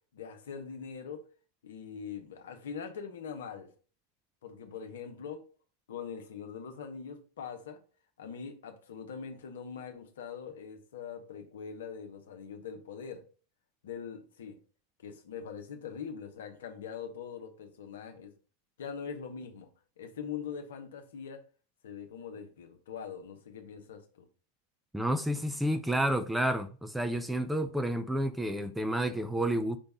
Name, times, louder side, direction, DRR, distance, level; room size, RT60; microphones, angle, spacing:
voice 1, 0.1-1.2 1.6-3.7 4.4-5.4 5.9-7.8 8.2-13.2 13.8-14.6 15.0-18.3 18.8-19.7 20.0-21.4 21.8-24.3, left 6 dB, 60° left, 1.1 m, -42 dB
voice 2, 24.9-29.8, right 1 dB, 5° right, 0.5 m, -30 dB
5.4 x 3.4 x 5.5 m
figure-of-eight pair, 90°, 0 cm